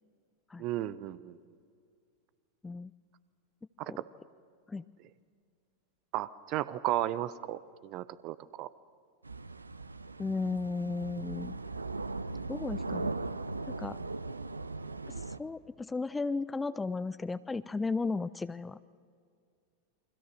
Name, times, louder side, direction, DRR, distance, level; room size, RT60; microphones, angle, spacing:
voice 1, 0.6-1.4 3.8-4.0 6.1-8.7, right 14 dB, 40° right, 16 dB, 0.8 m, -34 dB
sound 1, 9.2-15.4, right 3 dB, 80° right, 0.7 m, -38 dB
voice 2, 10.2-11.6 12.5-13.1 13.7-14.0 15.1-18.8, left 3 dB, 10° left, 16 dB, 0.5 m, -35 dB
29.0 x 24.0 x 6.4 m, 2.3 s
figure-of-eight pair, 90°, 0 cm